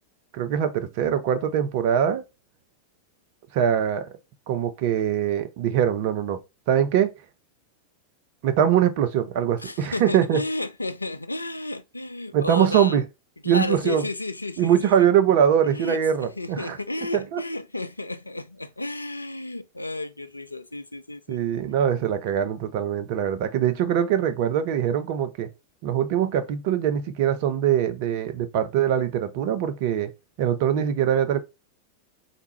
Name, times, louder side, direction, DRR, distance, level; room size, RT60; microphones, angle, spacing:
voice 1, 0.3-2.2 3.5-4.1 4.5-6.4 6.7-7.1 8.4-10.4 12.3-13.0 13.5-14.0 14.6-16.8 17.3-17.4 21.3-25.5 25.8-30.1 30.4-31.4, right 9 dB, 50° right, 0.6 m, -22 dB
voice 2, 9.6-13.0 13.4-14.9 15.6-21.7, left 2 dB, 85° left, 0.3 m, -32 dB
3.5 x 2.5 x 4.3 m
figure-of-eight pair, 90°, 0 cm